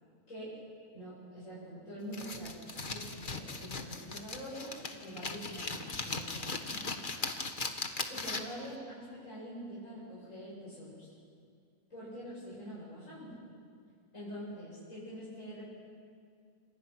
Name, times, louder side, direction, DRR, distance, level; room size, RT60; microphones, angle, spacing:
voice 1, 0.9-7.3 8.1-11.1 11.9-13.4 14.1-15.7, equal, 55° left, -9 dB, 8.4 m, -45 dB
sound 1, 2.1-8.7, left 3 dB, 35° left, 1.6 m, -38 dB
29.0 x 27.5 x 6.2 m, 2.2 s
omnidirectional pair, 1.6 m